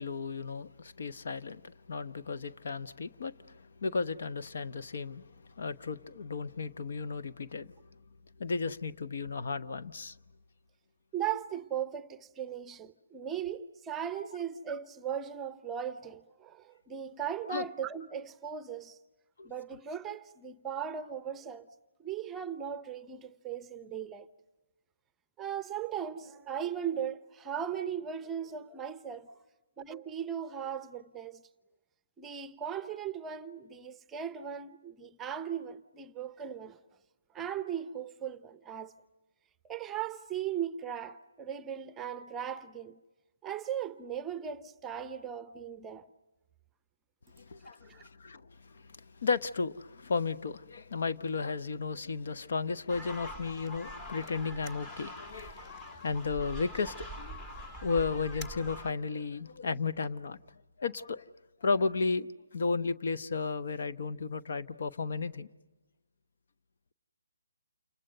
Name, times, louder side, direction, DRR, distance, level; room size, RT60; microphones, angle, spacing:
voice 1, 0.0-7.7 8.4-10.2 17.5-17.6 19.4-19.5 47.3-57.4 57.8-60.4 60.8-61.2 61.6-65.5, left 4 dB, 55° left, 0.9 m, -34 dB
voice 2, 11.1-19.0 19.4-21.7 22.0-24.3 25.4-29.3 29.8-31.4 32.2-36.8 37.3-38.9 39.6-43.0 43.4-46.1 47.9-48.0, right 9 dB, 10° right, 0.8 m, -38 dB
sound 1, 52.9-58.9, equal, 15° left, 1.7 m, -44 dB
29.5 x 28.0 x 6.7 m
figure-of-eight pair, 145°, 0 cm